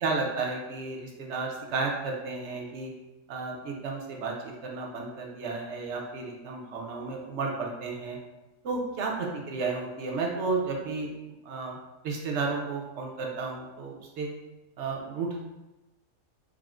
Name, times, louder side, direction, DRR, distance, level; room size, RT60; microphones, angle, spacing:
voice 1, 0.0-2.9 3.3-8.2 8.6-11.8 12.0-14.3 14.8-15.4, right 4 dB, 65° right, 0 dB, 0.8 m, -32 dB
4.9 x 2.0 x 2.3 m, 1.0 s
omnidirectional pair, 1.5 m